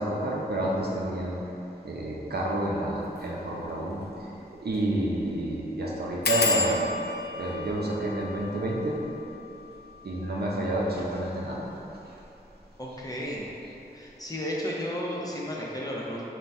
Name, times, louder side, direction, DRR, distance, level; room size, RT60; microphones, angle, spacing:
voice 1, 0.0-1.3 1.8-4.3 4.6-6.8 7.3-9.0 10.0-11.7, right 1 dB, 75° right, -3 dB, 0.6 m, -29 dB
sound 1, 3.1-3.3 3.7-3.8 4.0-4.1 4.7-4.9 5.2-5.3 6.2-11.5 12.2-12.7 13.0-13.4 13.6-13.7, left 3 dB, 75° left, 0.5 m, -33 dB
voice 2, 12.8-13.5 13.9-16.3, equal, 20° left, -5 dB, 0.7 m, -33 dB
3.9 x 2.2 x 4.4 m, 3.0 s
wide cardioid pair, 50°, 17 cm